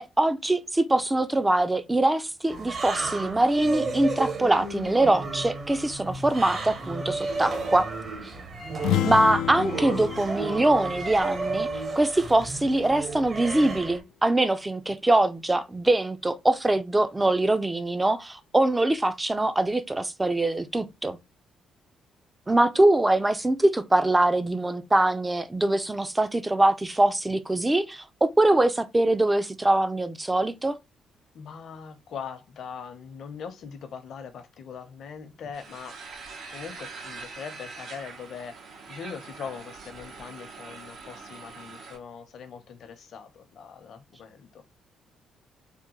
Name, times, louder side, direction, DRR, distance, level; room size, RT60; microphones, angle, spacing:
voice 1, 0.0-7.9 9.0-11.7 12.0-21.2 22.5-30.8, right 2 dB, 15° right, 0.4 m, -23 dB
sound 1, 2.5-14.0, right 3 dB, 40° right, 1.0 m, -33 dB
sound 2, 8.8-12.5, left 12 dB, 85° left, 0.3 m, -31 dB
voice 2, 31.3-35.9 36.5-38.5 38.9-44.6, left 6 dB, 65° left, 0.8 m, -41 dB
sound 3, 35.5-42.0, right 4 dB, 70° right, 0.9 m, -43 dB
3.5 x 2.2 x 2.9 m
cardioid pair, 90°, 0 cm